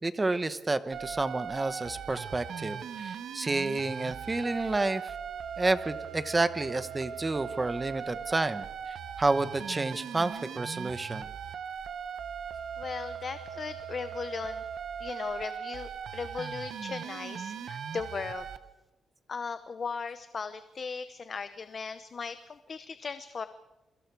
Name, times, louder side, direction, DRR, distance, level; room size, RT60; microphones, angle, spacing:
voice 1, 0.0-5.1 5.6-11.3, right 2 dB, 15° right, 12 dB, 1.0 m, -30 dB
sound 1, 0.9-18.6, right 7 dB, 55° right, 1.2 m, -39 dB
voice 2, 12.8-14.6 15.0-18.5 19.3-23.5, left 5 dB, 35° left, 11 dB, 0.8 m, -37 dB
28.0 x 24.0 x 4.8 m, 1.1 s
wide cardioid pair, 170°, 0 cm